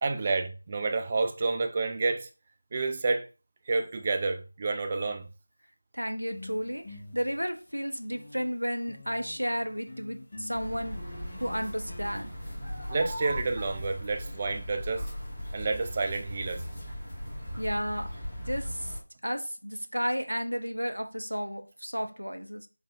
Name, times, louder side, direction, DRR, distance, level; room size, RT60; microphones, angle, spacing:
voice 1, 0.0-2.3 2.7-3.3 3.7-5.2 12.9-15.1 15.5-16.6, right 3 dB, 20° right, 0.3 m, -29 dB
voice 2, 5.9-11.1 11.4-12.3 17.6-18.1 18.5-22.7, equal, 90° right, 0.6 m, -33 dB
sound 1, 6.2-8.5 8.9-12.8, left 2 dB, 30° left, 0.8 m, -47 dB
sound 2, 10.5-19.0, equal, ahead, 1.1 m, -38 dB
3.9 x 2.6 x 2.7 m
figure-of-eight pair, 170°, 0 cm